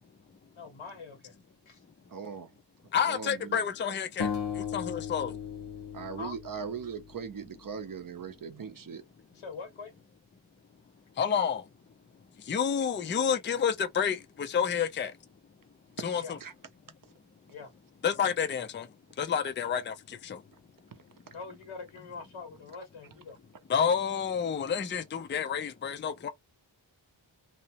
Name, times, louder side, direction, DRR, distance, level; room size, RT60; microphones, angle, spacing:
voice 1, 0.6-1.3 1.6-1.8 6.1-6.3 9.3-9.9 16.2-16.4 17.5-17.7 21.3-23.4, left 4 dB, 90° left, 1.3 m, -43 dB
voice 2, 2.1-2.6 3.0-3.6 5.9-9.0 16.1-16.5 20.9-21.0 21.3-21.4, right 6 dB, 45° right, 0.6 m, -40 dB
voice 3, 2.9-5.4 11.2-11.7 12.4-15.2 16.0-16.4 18.0-20.4 23.7-26.3, left 7 dB, 25° left, 0.4 m, -29 dB
sound 1, 4.2-7.4, left 7 dB, 60° left, 0.9 m, -36 dB
2.8 x 2.0 x 2.8 m
wide cardioid pair, 130°, 47 cm